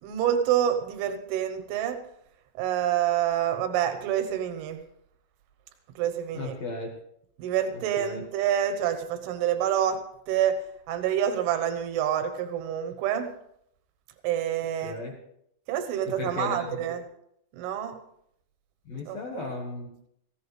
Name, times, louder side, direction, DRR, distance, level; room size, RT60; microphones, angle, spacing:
voice 1, 0.0-2.0 2.6-4.8 6.0-6.5 7.4-10.0 10.3-10.6 10.9-13.3 14.2-15.0 15.7-17.1 17.5-18.0 19.1-19.5, right 10 dB, 90° right, 8 dB, 3.5 m, -27 dB
voice 2, 6.3-6.9 8.0-8.3 14.8-15.2 16.1-16.8 18.9-20.1, left 3 dB, 70° left, 0 dB, 1.6 m, -35 dB
18.5 x 15.5 x 3.3 m, 0.73 s
omnidirectional pair, 5.3 m